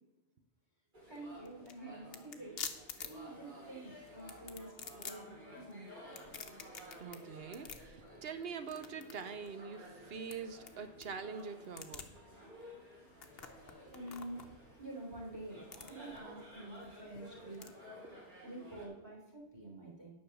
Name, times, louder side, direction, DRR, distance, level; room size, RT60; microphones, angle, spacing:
sound 1, 0.9-18.9, equal, 45° right, 3.3 m, -54 dB
sound 2, 1.0-17.7, left 6 dB, 65° left, 1.1 m, -50 dB
voice 1, 1.1-2.5 3.0-5.8 13.3-17.7 18.4-20.1, right 2 dB, 20° right, -3 dB, 3.6 m, -48 dB
voice 2, 7.0-12.1 18.1-18.2, right 6 dB, 65° right, 10 dB, 1.0 m, -44 dB
10.0 x 5.5 x 7.1 m, 1.1 s
omnidirectional pair, 1.1 m